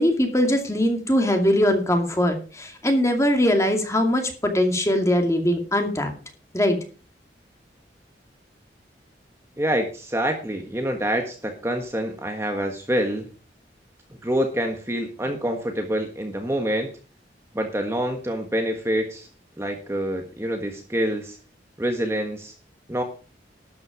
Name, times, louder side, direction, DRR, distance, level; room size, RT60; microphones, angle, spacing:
voice 1, 0.0-6.1 6.5-6.8, left 1 dB, 15° left, 4 dB, 2.3 m, -21 dB
voice 2, 9.6-13.3 14.2-16.9 17.5-19.3 19.6-21.4 21.8-22.5 22.9-23.0, equal, 15° right, 4 dB, 1.4 m, -26 dB
12.5 x 8.8 x 5.0 m, 0.37 s
head